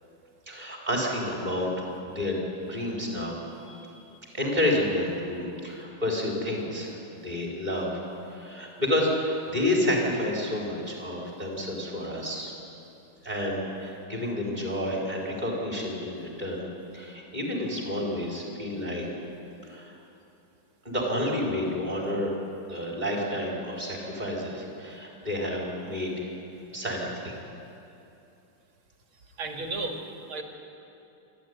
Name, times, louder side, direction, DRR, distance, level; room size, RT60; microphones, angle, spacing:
voice 1, 0.5-1.7 2.1-3.4 3.7-4.0 4.3-8.0 8.3-12.5 13.2-16.7 16.9-19.0 19.7-19.9 20.8-22.3 22.7-26.3 26.7-27.4, left 1 dB, 20° right, -2 dB, 4.5 m, -30 dB
voice 2, 29.4-30.4, right 3 dB, 90° right, 3 dB, 2.9 m, -34 dB
26.0 x 13.0 x 9.7 m, 2.8 s
omnidirectional pair, 2.2 m